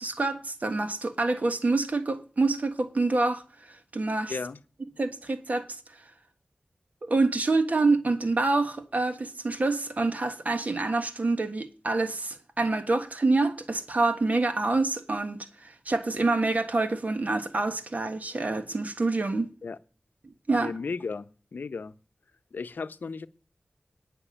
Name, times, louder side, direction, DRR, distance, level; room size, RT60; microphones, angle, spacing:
voice 1, 0.0-4.4 5.0-6.0 7.0-19.5 20.5-20.7, right 3 dB, 55° right, 1.4 m, -27 dB
voice 2, 20.5-21.9 22.5-23.3, left 4 dB, 85° left, 0.6 m, -35 dB
9.9 x 5.9 x 8.5 m
wide cardioid pair, 50°, 3 cm